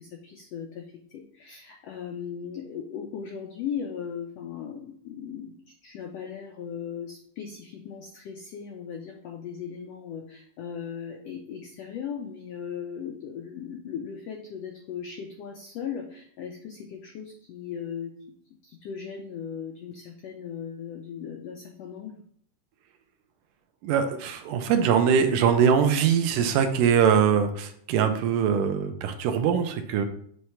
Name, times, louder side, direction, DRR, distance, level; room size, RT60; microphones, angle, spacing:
voice 1, 0.0-18.1 18.6-22.2, left 7 dB, 90° left, 2 dB, 1.4 m, -38 dB
voice 2, 23.8-30.1, right 7 dB, 75° right, 7 dB, 2.1 m, -22 dB
7.8 x 3.2 x 5.6 m, 0.63 s
omnidirectional pair, 3.9 m